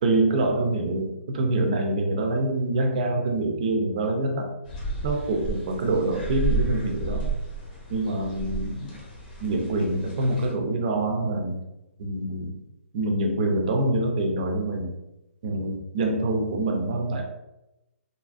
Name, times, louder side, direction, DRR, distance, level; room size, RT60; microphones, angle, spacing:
voice 1, 0.0-4.5 5.0-7.3 7.9-8.9 9.4-11.6 12.0-12.6 12.9-15.0 15.4-17.2, right 2 dB, 30° right, 3 dB, 0.4 m, -25 dB
sound 1, 4.7-10.5, right 3 dB, 40° left, 0.8 m, -32 dB
2.7 x 2.5 x 2.3 m, 0.92 s
hypercardioid pair, 170°, 7 cm